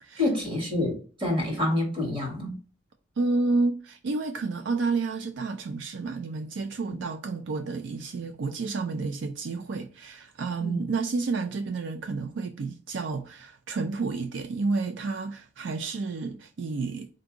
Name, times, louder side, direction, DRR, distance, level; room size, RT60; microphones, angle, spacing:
voice 1, 0.2-2.6 10.6-10.9, left 1 dB, 25° right, 1.5 m, -27 dB
voice 2, 3.2-17.1, right 3 dB, 75° right, 0.4 m, -30 dB
3.8 x 2.6 x 3.7 m
head